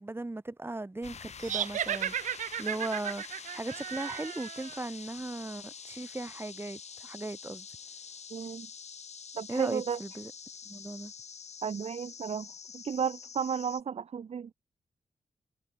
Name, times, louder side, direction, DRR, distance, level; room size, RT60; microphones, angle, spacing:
voice 1, 0.0-2.1 2.6-3.2 3.5-7.7 9.5-10.3 10.6-11.1, right 2 dB, 20° right, 4.8 m, -37 dB
sound 1, 1.0-13.8, left 6 dB, 60° left, 3.2 m, -46 dB
sound 2, 1.4-4.8, right 10 dB, 85° right, 0.5 m, -35 dB
voice 2, 8.3-8.7 9.4-10.0 11.6-12.5 12.7-14.5, right 7 dB, 55° right, 0.8 m, -33 dB
wide cardioid pair, 120°, 13 cm